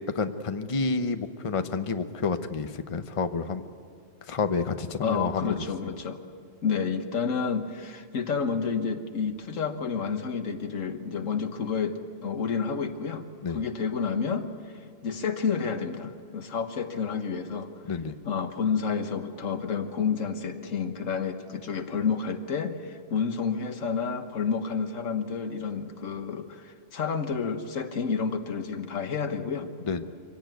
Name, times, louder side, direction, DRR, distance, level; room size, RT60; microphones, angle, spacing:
voice 1, 0.1-3.6 4.3-5.5 13.4-13.6 17.9-18.1 29.9-30.0, left 4 dB, 30° left, 8 dB, 0.8 m, -29 dB
voice 2, 5.0-6.2 6.6-14.5 15.0-17.7 18.2-29.7, left 5 dB, 90° left, 7 dB, 1.7 m, -30 dB
24.5 x 17.0 x 9.2 m, 2.2 s
omnidirectional pair, 1.3 m